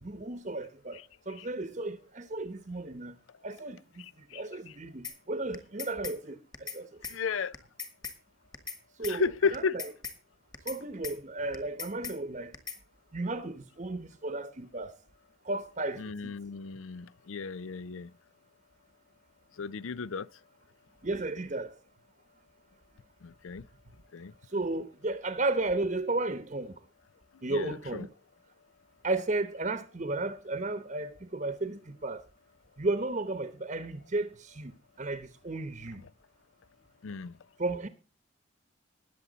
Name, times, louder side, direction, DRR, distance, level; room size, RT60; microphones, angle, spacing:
voice 1, 0.0-1.0 1.3-3.1 3.4-3.8 4.3-6.4 6.7-6.9 9.0-9.9 10.7-12.5 13.1-14.9 15.5-16.1 21.0-21.7 24.5-26.7 27.4-28.1 29.0-32.2 32.8-34.7 35.0-36.0 37.6-37.9, right 2 dB, 35° right, 0.9 m, -33 dB
sound 1, 5.0-5.2 5.5-6.2 6.5-6.8 7.0-7.2 7.5-8.2 8.5-8.8 9.0-9.2 9.5-10.2 10.5-10.8 11.0-11.2 11.5-12.2 12.5-12.8, left 5 dB, 20° left, 1.5 m, -39 dB
voice 2, 7.1-7.5 9.1-9.8 16.0-18.1 19.6-20.3 23.4-23.6 24.1-24.3 27.5-28.0 37.0-37.3, left 5 dB, 75° left, 0.5 m, -33 dB
20.0 x 7.1 x 4.0 m
head